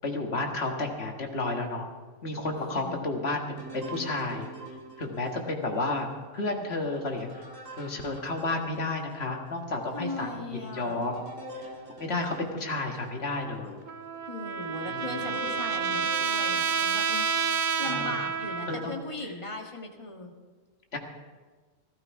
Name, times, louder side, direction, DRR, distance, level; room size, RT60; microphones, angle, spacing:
voice 1, 0.0-1.9 2.2-4.5 5.0-6.1 6.3-7.4 7.8-11.2 12.0-13.8 14.9-15.0 17.8-18.1 18.7-18.9 20.9-21.0, left 2 dB, 55° left, 2 dB, 1.9 m, -31 dB
voice 2, 2.6-3.1 9.9-11.0 14.2-17.3 17.8-20.3, left 2 dB, 25° left, 1 dB, 1.7 m, -38 dB
sound 1, 3.6-9.3 9.9-10.0 10.5-17.7 18.3-18.9, right 1 dB, 80° right, 2.5 m, -46 dB
Trumpet, 13.9-19.0, right 6 dB, 50° right, 0.6 m, -29 dB
15.5 x 14.0 x 4.8 m, 1.4 s
omnidirectional pair, 1.3 m